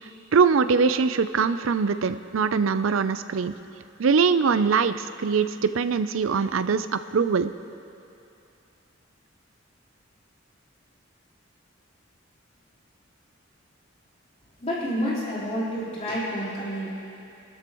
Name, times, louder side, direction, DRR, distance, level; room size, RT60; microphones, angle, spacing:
voice 1, 0.3-3.5 4.0-7.5, right 5 dB, 80° right, 12 dB, 0.5 m, -22 dB
voice 2, 14.6-16.9, equal, 30° left, -9 dB, 4.0 m, -29 dB
25.5 x 13.0 x 3.1 m, 2.7 s
head